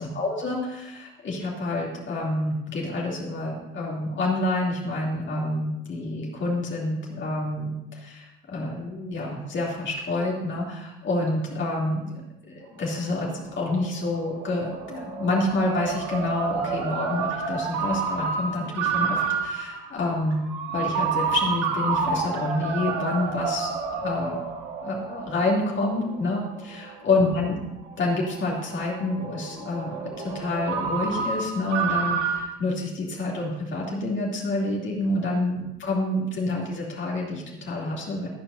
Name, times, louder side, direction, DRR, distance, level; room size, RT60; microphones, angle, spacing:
voice 1, 0.0-20.4 20.7-24.4 24.8-27.6 28.0-38.3, left 2 dB, 35° left, -4 dB, 3.0 m, -28 dB
Ringtone, 12.7-32.5, right 5 dB, 50° right, 2.3 m, -30 dB
22.0 x 9.0 x 2.7 m, 0.92 s
figure-of-eight pair, 60°, 33 cm